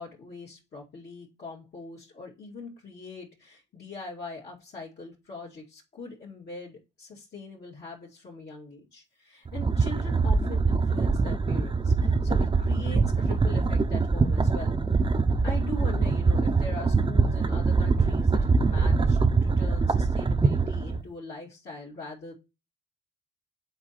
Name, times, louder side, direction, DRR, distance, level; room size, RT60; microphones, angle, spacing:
voice 1, 0.0-14.8 15.4-22.3, left 3 dB, 55° left, -6 dB, 2.4 m, -42 dB
sound 1, 9.5-21.0, right 4 dB, 25° right, 0.8 m, -23 dB
7.9 x 4.1 x 4.2 m, 0.26 s
cardioid pair, 90°, 20 cm